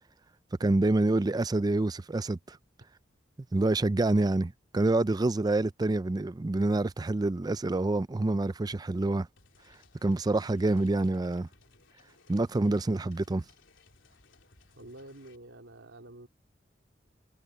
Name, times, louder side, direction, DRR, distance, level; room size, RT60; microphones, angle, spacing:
voice 1, 0.6-2.6 3.5-9.3 10.0-11.5 12.3-13.4, right 2 dB, 20° right, 0.4 m, -27 dB
sound 1, 9.4-15.4, left 3 dB, 85° left, 3.4 m, -61 dB
voice 2, 14.8-16.3, right 1 dB, 80° right, 3.1 m, -48 dB
head